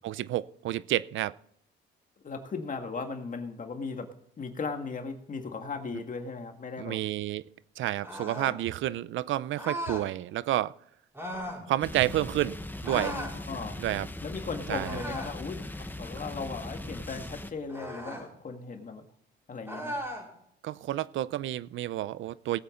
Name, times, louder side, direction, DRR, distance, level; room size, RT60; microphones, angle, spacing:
voice 1, 0.0-1.3 6.8-7.5 7.8-10.7 11.7-12.6 12.8-13.1 13.8-14.1 14.7-15.0 20.6-22.6, right 14 dB, 75° right, 19 dB, 0.6 m, -30 dB
voice 2, 2.2-4.1 4.4-7.0 12.9-13.8 14.2-19.0 19.5-20.0, left 4 dB, 40° left, 5 dB, 1.9 m, -37 dB
sound 1, 8.0-8.6 9.6-10.1 11.1-11.6 12.8-13.4 14.8-15.4 17.7-18.3 19.7-20.3, equal, 10° right, 5.0 m, -37 dB
sound 2, 11.8-17.5, left 1 dB, 10° left, 1.1 m, -39 dB
18.5 x 8.5 x 3.8 m, 0.70 s
cardioid pair, 90°, 20 cm